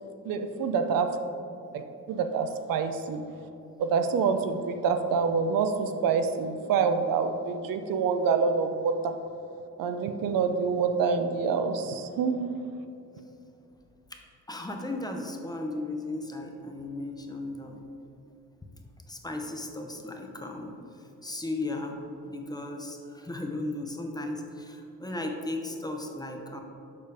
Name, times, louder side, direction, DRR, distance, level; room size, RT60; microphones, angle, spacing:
voice 1, 0.3-1.1 1.7-3.2 3.8-9.1 9.8-12.5, right 5 dB, 90° right, 8 dB, 0.5 m, -26 dB
voice 2, 14.5-17.8 19.1-20.7 21.2-22.0 22.3-26.6, left 2 dB, 10° left, 3 dB, 0.6 m, -35 dB
6.8 x 5.0 x 3.4 m, 2.7 s
cardioid pair, 115°, 33 cm